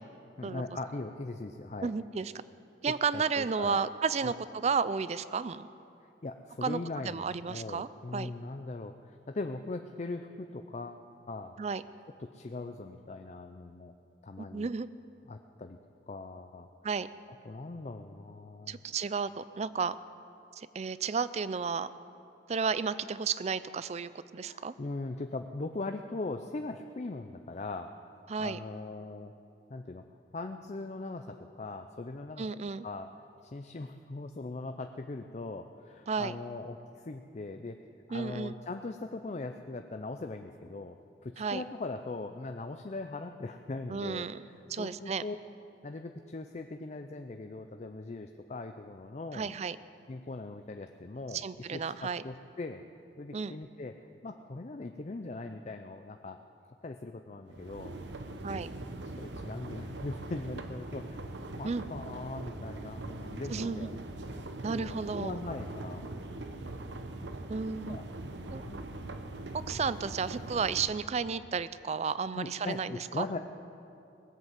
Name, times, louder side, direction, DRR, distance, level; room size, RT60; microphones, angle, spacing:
voice 1, 0.4-1.9 3.1-3.8 4.2-4.3 6.0-11.6 12.2-13.9 14.2-14.7 15.3-15.8 16.1-16.7 17.5-18.8 24.4-27.9 28.4-29.3 29.7-30.0 30.3-32.5 32.8-33.1 33.4-44.3 44.8-45.4 45.8-49.5 50.1-52.8 53.2-54.0 54.2-56.4 56.8-57.9 58.3-58.6 59.0-64.0 64.6-66.7 67.9-68.0 68.3-69.2 72.3-73.4, left 3 dB, 40° left, 6 dB, 0.5 m, -40 dB
voice 2, 1.8-2.3 2.8-5.7 6.6-8.3 11.6-11.8 14.4-14.9 16.8-17.1 18.7-20.0 20.6-21.9 22.5-24.7 28.3-28.6 32.4-32.9 36.1-36.3 38.1-38.5 41.4-41.6 43.9-44.4 44.7-45.2 49.3-49.8 51.3-52.2 53.3-53.5 58.4-58.7 61.6-61.8 63.5-63.9 64.6-65.4 67.5-68.0 68.5-68.6 69.5-73.3, right 5 dB, 35° right, 16 dB, 0.4 m, -32 dB
sound 1, 57.5-70.9, right 2 dB, 75° right, 0.9 m, -41 dB
19.5 x 8.1 x 7.5 m, 2.7 s
head